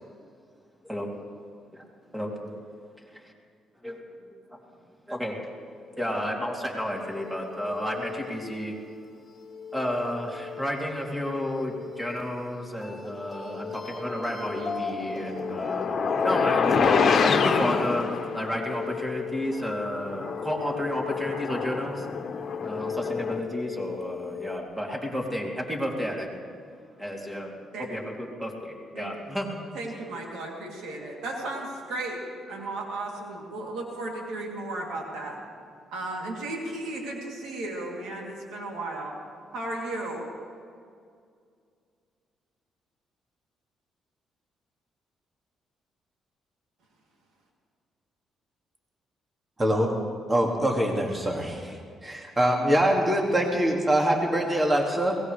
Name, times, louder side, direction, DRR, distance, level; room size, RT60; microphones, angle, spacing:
voice 1, 2.1-2.5 3.1-3.3 3.8-4.0 4.2-4.4 5.1-5.4 5.9-8.8 9.7-18.1 18.3-22.1 22.6-26.3 27.0-27.5 27.8-29.6, equal, 5° right, -1 dB, 3.0 m, -32 dB
sound 1, 6.8-24.6, left 6 dB, 20° left, 2.1 m, -36 dB
sound 2, 14.8-18.7 19.5-19.6 20.1-23.4, left 5 dB, 55° left, 1.3 m, -27 dB
voice 2, 29.7-32.2 32.5-35.4 35.9-39.1 39.5-40.2, right 2 dB, 90° right, -1 dB, 3.1 m, -34 dB
voice 3, 49.6-49.9 50.3-55.2, right 1 dB, 20° right, 1 dB, 2.2 m, -24 dB
22.5 x 18.5 x 3.4 m, 2.3 s
cardioid pair, 90°, 0 cm